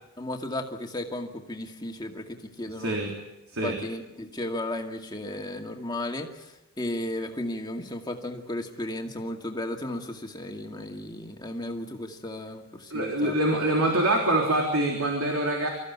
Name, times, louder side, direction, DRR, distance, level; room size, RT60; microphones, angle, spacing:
voice 1, 0.2-3.0 3.6-13.3, left 1 dB, 20° left, 3 dB, 2.1 m, -34 dB
voice 2, 2.8-3.1 3.5-3.8 12.9-15.7, right 1 dB, 75° right, 1 dB, 3.6 m, -25 dB
25.5 x 15.0 x 9.5 m, 0.98 s
head